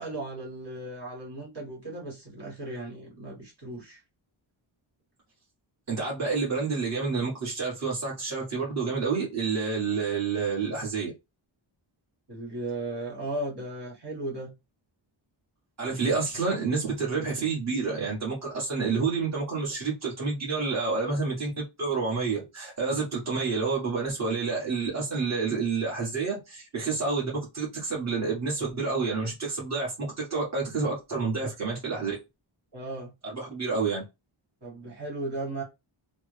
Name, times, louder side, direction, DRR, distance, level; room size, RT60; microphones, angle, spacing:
voice 1, 0.0-4.0 12.3-14.5 32.7-33.1 34.6-35.6, right 2 dB, 55° right, 1.7 m, -36 dB
voice 2, 5.9-11.1 15.8-32.1 33.3-34.0, right 4 dB, 35° right, 1.5 m, -29 dB
3.4 x 2.1 x 3.3 m
wide cardioid pair, 120°, 48 cm